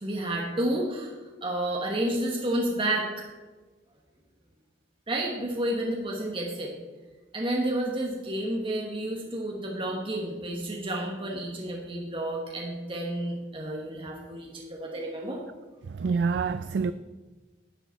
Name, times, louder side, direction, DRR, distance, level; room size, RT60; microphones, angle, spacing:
voice 1, 0.0-1.1 1.4-3.3 5.1-6.7 7.3-15.4, right 1 dB, 30° right, 1.3 m, -30 dB
voice 2, 15.9-16.9, right 5 dB, 70° right, 0.3 m, -26 dB
10.5 x 9.0 x 4.1 m
head